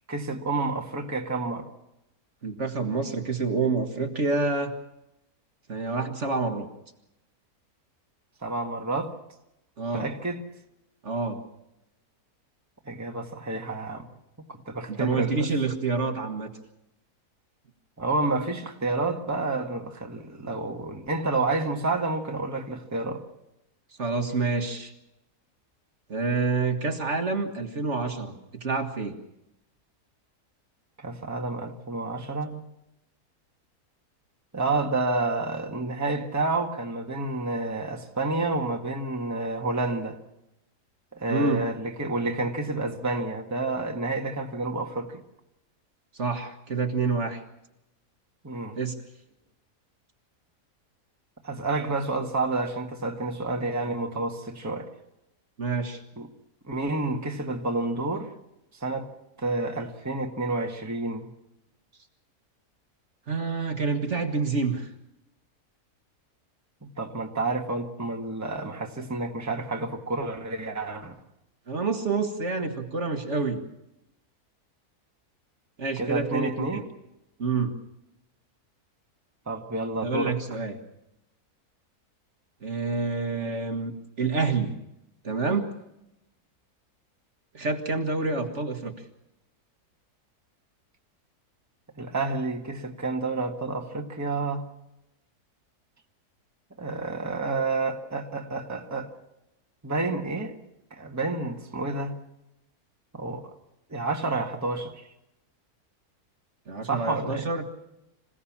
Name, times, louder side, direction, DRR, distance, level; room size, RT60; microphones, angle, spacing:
voice 1, 0.1-1.7 8.4-9.2 9.9-10.4 12.8-14.1 14.5-15.5 18.0-23.2 31.0-32.6 34.5-40.2 41.1-45.2 48.4-48.8 51.4-54.9 56.2-56.3 56.7-58.3 58.8-59.1 59.4-61.3 66.8-71.1 76.0-76.8 79.5-80.3 92.0-94.6 96.8-99.1 99.8-100.5 100.9-102.2 103.1-103.5 103.9-105.1 106.9-107.5, right 3 dB, 10° right, 1.5 m, -29 dB
voice 2, 2.4-4.7 5.7-6.7 9.8-10.1 11.0-11.4 14.9-16.5 24.0-24.9 26.1-29.2 41.3-41.6 46.1-47.4 48.8-49.0 55.6-56.0 63.3-64.9 71.7-73.6 75.8-76.8 77.4-77.8 80.0-80.8 82.6-84.8 85.2-85.7 87.5-88.9 106.7-107.6, right 4 dB, 50° right, 1.9 m, -28 dB
26.5 x 16.5 x 7.3 m
omnidirectional pair, 1.7 m